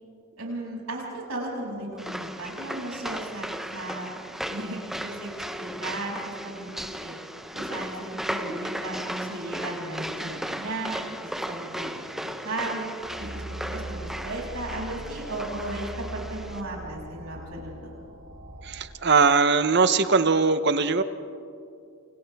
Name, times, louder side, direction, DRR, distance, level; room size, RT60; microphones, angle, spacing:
voice 1, 0.4-3.5 3.7-4.2 4.5-5.3 5.6-7.1 7.5-8.0 8.3-11.9 12.1-12.9 13.2-13.4 13.7-17.7, right 2 dB, 70° right, -3 dB, 6.8 m, -35 dB
sound 1, 2.0-16.6, equal, ahead, 0.7 m, -36 dB
sound 2, 13.0-18.9, right 1 dB, 85° right, 3.4 m, -40 dB
voice 2, 18.6-21.0, right 4 dB, 50° right, 11 dB, 0.8 m, -21 dB
29.5 x 28.0 x 3.5 m, 2.5 s
head